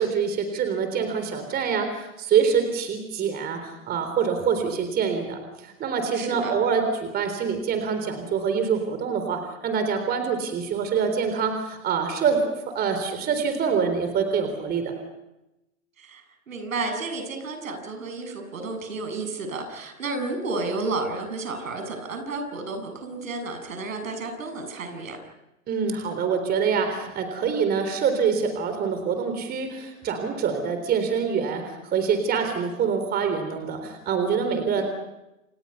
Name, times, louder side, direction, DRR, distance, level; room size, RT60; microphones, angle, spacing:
voice 1, 0.0-12.4 12.7-14.9 25.7-34.8, right 6 dB, 25° right, 7 dB, 3.8 m, -25 dB
voice 2, 6.1-6.5 16.0-25.2, right 3 dB, 70° right, 5 dB, 7.7 m, -32 dB
29.0 x 28.0 x 5.7 m, 0.94 s
hypercardioid pair, 115°, 41 cm